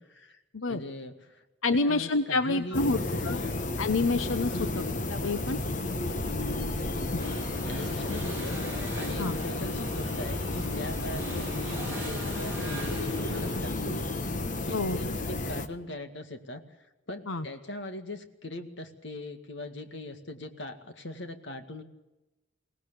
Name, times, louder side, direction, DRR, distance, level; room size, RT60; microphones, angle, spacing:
voice 1, 0.0-0.4 0.7-1.4 1.7-3.6 4.5-4.9 7.0-14.2 14.7-16.6 17.1-21.8, left 1 dB, 60° left, 7 dB, 2.0 m, -40 dB
voice 2, 1.6-3.0 3.2-3.4 3.8-4.7 5.1-5.6 9.2-9.4 14.7-15.0 17.3-17.4, left 3 dB, 85° left, 10 dB, 0.9 m, -27 dB
sound 1, 2.7-15.7, left 2 dB, 40° left, 1.2 m, -32 dB
sound 2, 7.2-13.6, right 1 dB, 10° right, 7.7 m, -41 dB
23.0 x 18.5 x 6.9 m, 1.0 s
head